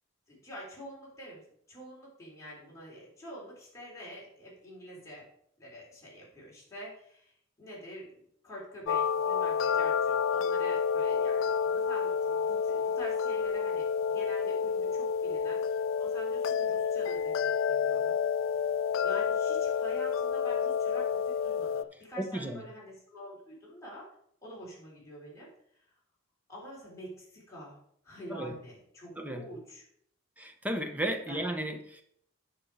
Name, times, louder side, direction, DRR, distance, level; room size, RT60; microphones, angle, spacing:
voice 1, 0.3-1.4 1.7-5.2 5.6-18.2 19.0-24.1 24.4-25.5 26.5-27.8 28.0-29.8 31.3-31.5, equal, 15° left, -6 dB, 3.7 m, -47 dB
sound 1, 8.9-21.8, left 6 dB, 65° left, 0.3 m, -29 dB
voice 2, 22.2-22.6 28.3-28.6 29.2-29.5 30.4-32.0, right 1 dB, 10° right, 5 dB, 0.8 m, -34 dB
8.7 x 6.2 x 4.8 m, 0.68 s
head